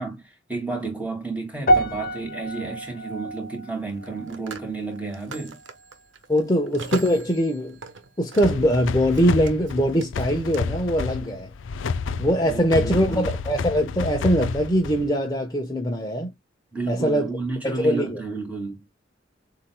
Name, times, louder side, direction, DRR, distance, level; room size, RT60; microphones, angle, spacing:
voice 1, 0.0-5.6 12.5-13.3 16.7-18.8, right 3 dB, 10° right, 2.4 m, -31 dB
sound 1, 1.7-6.1 6.3-6.7 7.4-7.5, right 1 dB, 50° left, 0.8 m, -28 dB
Telephone, 1.7-1.9 3.9-8.7 9.0-10.6, right 3 dB, 80° right, 1.1 m, -39 dB
voice 2, 6.3-7.8 8.2-11.5 12.2-16.3 16.9-17.3 17.6-18.2, equal, 20° left, 1.0 m, -22 dB
sound 2, 8.4-15.2, left 5 dB, 90° left, 0.4 m, -30 dB
7.3 x 2.9 x 2.2 m
head